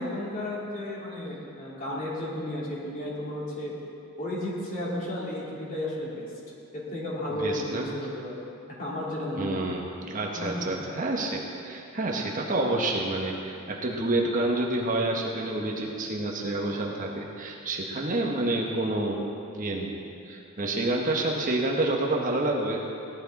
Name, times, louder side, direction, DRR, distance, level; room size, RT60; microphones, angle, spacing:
voice 1, 0.0-3.7 4.2-6.3 6.7-8.5 8.8-9.6 10.3-11.0, left 1 dB, 40° left, -6 dB, 3.1 m, -33 dB
voice 2, 7.3-7.9 9.4-19.2 19.5-19.9 20.2-22.9, right 2 dB, 35° right, -1 dB, 1.1 m, -28 dB
16.5 x 11.5 x 4.1 m, 2.7 s
head